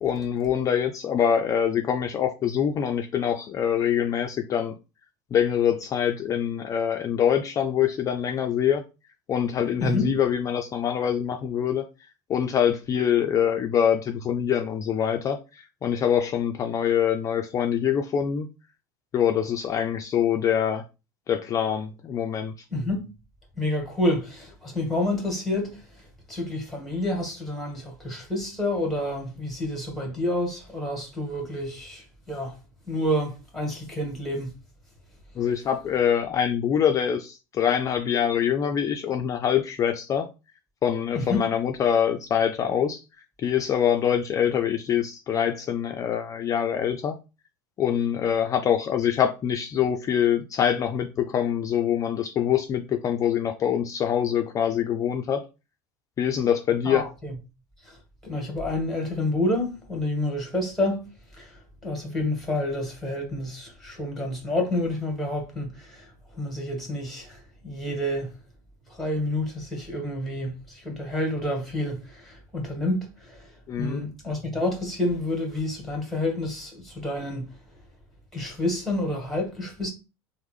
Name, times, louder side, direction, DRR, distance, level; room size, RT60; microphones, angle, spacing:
voice 1, 0.0-4.7 5.3-8.8 9.3-11.8 12.3-18.5 19.1-20.8 21.3-22.5 35.4-40.3 40.8-43.0 43.4-47.2 47.8-55.4 56.2-57.0 73.7-74.0, left 9 dB, 35° left, 0.4 m, -24 dB
voice 2, 9.8-10.1 22.7-23.1 23.6-32.6 32.9-34.5 41.1-41.5 56.8-57.4 57.8-68.3 68.9-73.5 73.8-77.6 78.3-79.9, left 1 dB, ahead, 1.5 m, -29 dB
3.4 x 2.0 x 3.1 m
supercardioid pair, 100°, 10 cm